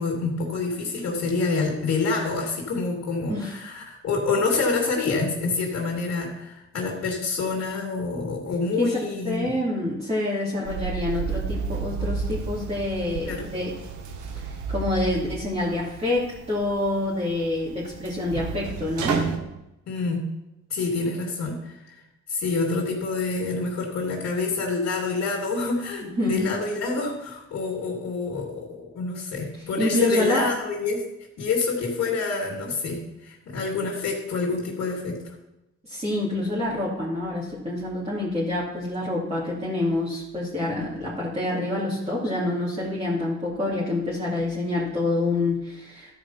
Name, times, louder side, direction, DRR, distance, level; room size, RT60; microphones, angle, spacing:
voice 1, 0.0-9.5 13.2-13.5 19.9-20.3 20.7-21.8 22.3-31.0 31.4-35.2, left 4 dB, 60° left, -2 dB, 2.7 m, -27 dB
voice 2, 9.2-13.8 14.3-19.2 26.2-26.5 29.8-30.5 35.8-46.1, left 2 dB, 20° right, -8 dB, 2.7 m, -27 dB
sound 1, 10.6-19.4, right 5 dB, 75° right, 1.3 m, -32 dB
13.0 x 5.0 x 5.8 m, 0.93 s
cardioid pair, 90°, 30 cm